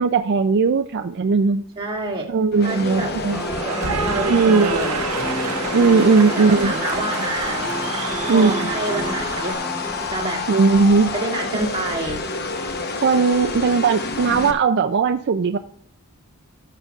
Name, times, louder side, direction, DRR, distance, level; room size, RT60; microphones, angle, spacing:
voice 1, 0.0-1.6 2.3-3.4 4.3-4.8 5.7-6.7 8.3-8.7 10.5-11.1 13.0-15.6, right 4 dB, 50° right, 7 dB, 0.4 m, -18 dB
voice 2, 1.8-2.3 2.6-3.1 3.6-5.0 6.4-7.6 8.3-9.6 10.1-10.4 11.1-12.3, right 2 dB, 25° right, -2 dB, 2.4 m, -28 dB
sound 1, 2.5-14.5, left 3 dB, 45° left, 1.0 m, -28 dB
sound 2, 2.9-10.1, right 1 dB, 5° right, 0.7 m, -32 dB
Cheering / Applause, 3.3-9.5, right 5 dB, 80° right, 0.9 m, -29 dB
17.5 x 6.8 x 2.4 m, 0.65 s
head